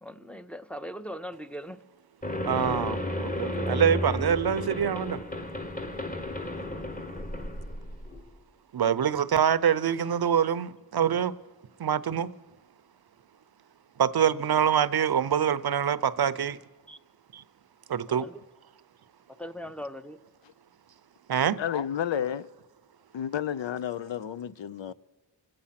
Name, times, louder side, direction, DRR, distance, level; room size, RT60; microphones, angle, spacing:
voice 1, 0.0-1.8 16.9-17.0 18.1-18.4 19.3-20.2, equal, 5° left, 0.6 m, -40 dB
sound 1, 2.2-8.3, left 1 dB, 20° left, 1.1 m, -33 dB
voice 2, 2.5-5.2 8.7-11.3 11.8-12.3 14.0-16.6 17.3-17.4 17.9-18.2 21.3-21.6, right 8 dB, 55° right, 0.7 m, -25 dB
voice 3, 21.6-22.5 23.1-24.9, left 9 dB, 75° left, 0.6 m, -31 dB
25.5 x 8.7 x 5.8 m
wide cardioid pair, 65°, 45 cm